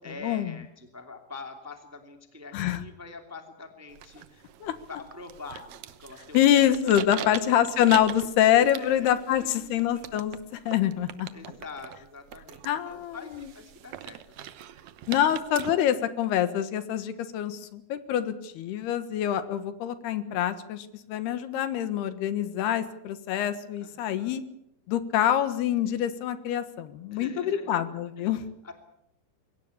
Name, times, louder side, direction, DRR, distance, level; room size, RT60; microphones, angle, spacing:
voice 1, 0.0-4.5 4.9-7.5 8.7-10.1 11.3-14.5 23.8-24.4 27.1-28.7, left 3 dB, 5° right, 5 dB, 1.6 m, -45 dB
sound 1, 3.9-15.7, right 12 dB, 80° right, 1.6 m, -43 dB
voice 2, 6.3-11.3 12.7-13.5 15.1-24.4 24.9-28.4, left 11 dB, 80° left, 12 dB, 3.3 m, -25 dB
23.0 x 17.5 x 8.5 m, 0.79 s
omnidirectional pair, 4.7 m